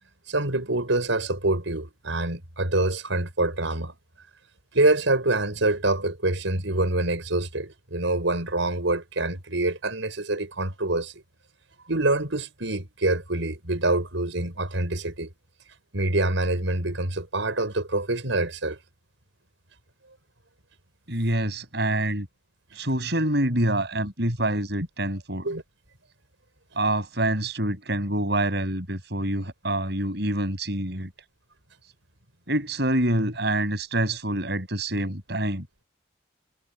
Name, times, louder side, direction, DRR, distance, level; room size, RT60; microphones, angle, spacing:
voice 1, 0.3-4.0 4.7-11.1 11.9-15.3 15.9-18.8 25.4-25.6, right 2 dB, 80° right, 5.3 m, -25 dB
voice 2, 21.1-22.3 22.7-25.5 26.8-31.1 32.5-35.7, right 1 dB, 55° right, 7.6 m, -26 dB
head